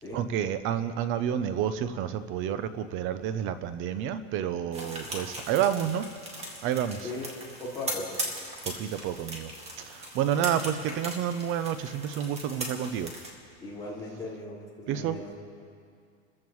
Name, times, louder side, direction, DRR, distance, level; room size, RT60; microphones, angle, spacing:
voice 1, 0.1-6.1 6.6-7.1 8.6-9.5 9.8-13.1 14.9-15.2, right 9 dB, 30° right, 12 dB, 0.6 m, -29 dB
sound 1, 4.7-13.3, right 1 dB, 15° right, 2.1 m, -39 dB
voice 2, 7.0-8.2 13.6-15.4, left 2 dB, 10° left, -8 dB, 4.7 m, -38 dB
29.0 x 14.5 x 3.1 m, 2.3 s
supercardioid pair, 150°, 39 cm